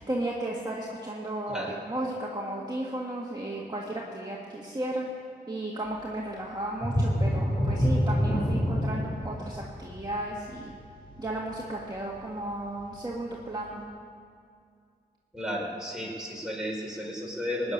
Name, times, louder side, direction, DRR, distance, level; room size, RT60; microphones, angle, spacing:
voice 1, 0.0-5.1 5.5-10.7 11.2-13.8, right 1 dB, 25° right, -3 dB, 1.9 m, -34 dB
sound 1, 6.8-12.2 12.7-12.8 13.3-13.4, equal, 30° left, 3.4 m, -27 dB
voice 2, 15.3-17.7, equal, 5° right, -3 dB, 4.6 m, -33 dB
18.5 x 7.0 x 9.8 m, 2.3 s
cardioid pair, 45°, 18 cm